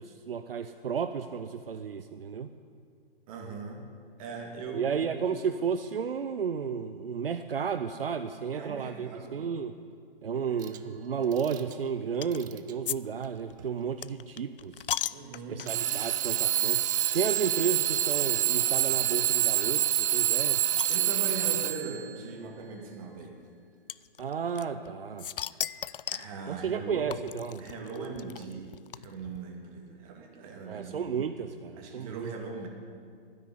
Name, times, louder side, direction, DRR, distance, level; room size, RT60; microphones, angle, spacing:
voice 1, 0.0-2.5 4.7-9.7 10.2-14.7 15.5-16.8 17.1-20.6 24.2-25.3 26.5-27.7 30.7-32.3, right 6 dB, 75° right, 9 dB, 0.7 m, -32 dB
voice 2, 3.3-3.9 4.2-5.0 8.5-9.4 10.3-10.9 15.1-15.7 20.9-23.4 25.5-25.8 26.1-27.1 27.6-31.1 31.8-32.7, right 4 dB, 35° right, 2 dB, 2.5 m, -40 dB
Alarm / Clock, 10.6-10.8 11.3-11.7 12.3-12.7 13.6-13.7 15.7-22.1, right 13 dB, 20° right, 0.4 m, -27 dB
sound 1, 12.2-12.5 12.9-13.0 13.2-15.9 16.6-16.7 17.0-17.1 18.1-18.2 18.7-18.8 19.1-19.2 19.4-19.5 19.9-21.5 22.4-22.5 23.9-24.9 25.2-26.4 27.1-29.4, left 9 dB, 65° left, 0.4 m, -37 dB
Glass, 17.0-19.5, left 2 dB, 45° left, 5.0 m, -56 dB
12.0 x 10.0 x 9.9 m, 2.2 s
figure-of-eight pair, 125°, 29 cm